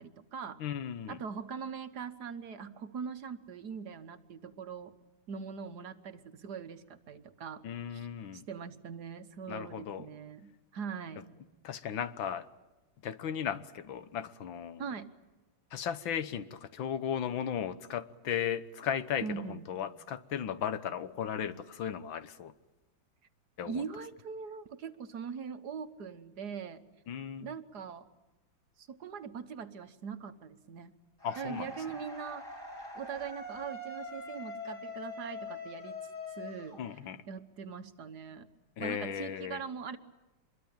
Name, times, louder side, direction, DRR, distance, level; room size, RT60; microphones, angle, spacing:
voice 1, 0.0-0.6 1.1-4.9 5.3-7.6 7.9-8.1 8.3-11.2 14.8-15.1 19.2-19.7 23.7-26.8 27.4-28.1 28.8-30.9 31.4-32.5 32.9-36.0 36.3-36.8 37.3-38.5 38.8-40.0, right 6 dB, 60° right, 9 dB, 1.7 m, -41 dB
voice 2, 0.6-1.2 7.6-8.4 9.5-10.1 11.6-12.5 13.0-14.9 15.7-22.5 23.6-23.8 27.1-27.5 31.2-31.7 36.8-37.2 38.8-39.6, left 8 dB, 80° left, 12 dB, 1.8 m, -36 dB
sound 1, 31.2-37.3, left 2 dB, 40° left, 7.5 m, -43 dB
25.5 x 22.5 x 8.9 m, 1.1 s
omnidirectional pair, 2.1 m